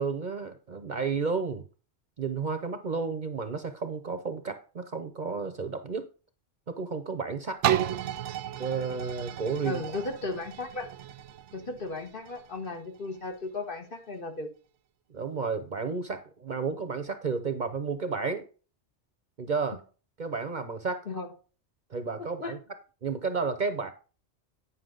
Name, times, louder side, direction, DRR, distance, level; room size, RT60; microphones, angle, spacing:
voice 1, 0.0-1.6 2.2-6.1 6.7-7.6 8.6-9.8 15.1-18.5 19.4-19.8 20.2-21.0 21.9-22.6 23.0-23.9, right 5 dB, 45° right, 0.8 m, -32 dB
sound 1, 7.6-13.4 13.9-14.0, right 11 dB, 85° right, 0.9 m, -33 dB
voice 2, 9.6-10.9 11.5-14.5 21.1-21.3 22.2-22.6, left 3 dB, 50° left, 1.4 m, -36 dB
9.5 x 5.7 x 3.8 m
omnidirectional pair, 1.2 m